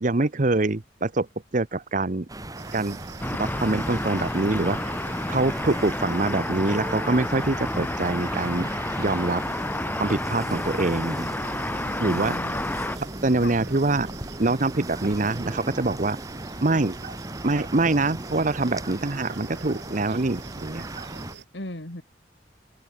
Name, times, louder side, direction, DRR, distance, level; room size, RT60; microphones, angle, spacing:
voice 1, 0.0-1.3 1.5-2.3 2.7-3.0 3.4-4.9 5.3-8.7 9.0-9.4 10.0-11.3 12.0-12.4 13.2-14.1 14.4-16.2 16.6-17.2 17.4-21.1, right 2 dB, 45° right, 0.9 m, -24 dB
sound 1, 2.3-21.3, right 1 dB, 20° right, 2.0 m, -37 dB
sound 2, 2.6-21.4, right 5 dB, 80° right, 3.5 m, -46 dB
sound 3, 3.2-13.0, left 1 dB, 10° left, 2.6 m, -30 dB
voice 2, 12.0-12.7 13.4-13.5 21.5-22.0, left 1 dB, 80° left, 3.2 m, -36 dB
head